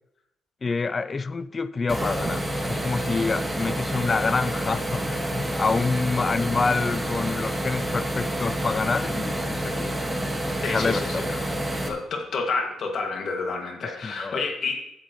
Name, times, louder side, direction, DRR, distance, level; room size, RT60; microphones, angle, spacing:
voice 1, 0.6-9.9 10.6-11.4 14.0-14.4, left 4 dB, 35° left, 15 dB, 0.4 m, -27 dB
sound 1, 1.9-11.9, right 1 dB, 10° right, 1.6 m, -28 dB
voice 2, 10.6-11.3 11.9-14.8, left 4 dB, 60° left, 2 dB, 2.0 m, -29 dB
12.5 x 7.5 x 3.1 m, 0.83 s
cardioid pair, 90°, 0 cm